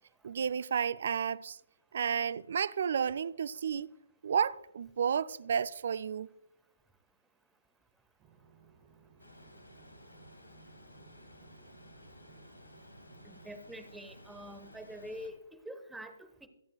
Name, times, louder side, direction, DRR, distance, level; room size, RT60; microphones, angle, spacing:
voice 1, 0.2-1.6 1.9-3.9 4.2-6.3, right 7 dB, 55° right, 0.4 m, -32 dB
sound 1, 8.2-13.5, right 6 dB, 20° right, 1.9 m, -61 dB
sound 2, 9.2-15.3, left 1 dB, 85° left, 2.0 m, -55 dB
voice 2, 13.2-16.5, equal, 5° right, 1.1 m, -46 dB
23.0 x 8.5 x 2.3 m
figure-of-eight pair, 135°, 0 cm